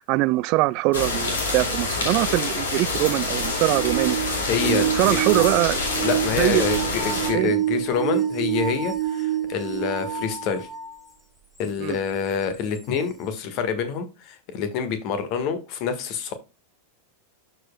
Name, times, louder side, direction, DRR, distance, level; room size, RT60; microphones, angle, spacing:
voice 1, 0.0-4.2 4.6-5.8 6.4-6.6 7.3-7.5 11.8-12.0, right 21 dB, 40° right, 0.3 m, -23 dB
sound 1, 0.9-7.3, left 3 dB, 65° left, 2.3 m, -26 dB
sound 2, 3.3-10.9 11.6-11.7 12.8-12.9, right 11 dB, 5° left, 1.9 m, -27 dB
voice 2, 4.5-5.6 6.0-10.7 11.6-16.3, left 6 dB, 40° left, 1.5 m, -27 dB
12.5 x 4.9 x 2.2 m
figure-of-eight pair, 90°, 0 cm